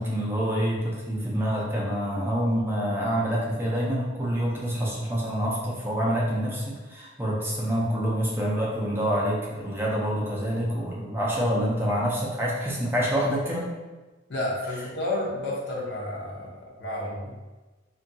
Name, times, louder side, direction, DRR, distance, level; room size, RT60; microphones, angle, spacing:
voice 1, 0.0-13.7, equal, 10° right, -5 dB, 0.5 m, -27 dB
voice 2, 14.3-17.3, left 1 dB, 60° left, -3 dB, 0.7 m, -31 dB
2.8 x 2.5 x 2.6 m, 1.2 s
head